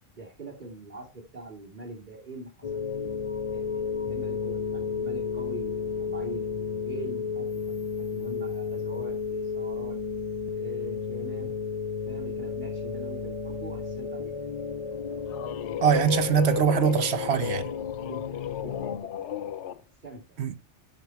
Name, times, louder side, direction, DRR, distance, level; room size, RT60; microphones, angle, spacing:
voice 1, 0.2-3.1 3.5-6.4 6.8-10.0 10.5-11.5 12.0-14.5 17.9-19.1 20.0-20.2, right 2 dB, 40° right, 2.7 m, -43 dB
sound 1, 2.6-19.0, left 6 dB, 40° left, 0.5 m, -33 dB
sound 2, 14.9-19.8, left 10 dB, 80° left, 1.0 m, -35 dB
voice 2, 15.8-17.7 20.4-20.5, right 8 dB, 65° right, 1.2 m, -23 dB
14.0 x 5.5 x 4.5 m
omnidirectional pair, 1.2 m